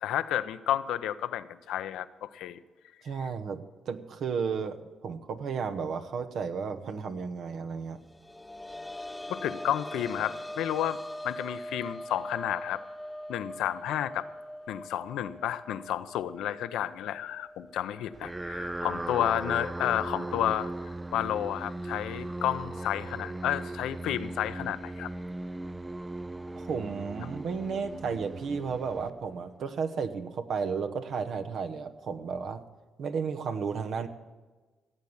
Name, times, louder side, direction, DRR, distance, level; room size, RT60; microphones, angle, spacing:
voice 1, 0.0-2.6 9.3-11.0 11.2-12.8 13.3-14.2 14.7-20.7 21.1-25.1, left 11 dB, 80° left, 12 dB, 0.6 m, -31 dB
voice 2, 3.0-8.0 26.5-32.6 33.0-34.1, right 5 dB, 70° right, 7 dB, 1.0 m, -33 dB
sound 1, 8.0-19.5 19.8-19.9 21.5-21.6, left 1 dB, 10° left, 0.7 m, -42 dB
sound 2, 18.1-29.6, right 2 dB, 15° right, 0.4 m, -38 dB
16.0 x 8.1 x 7.2 m, 1.3 s
supercardioid pair, 65°, 0 cm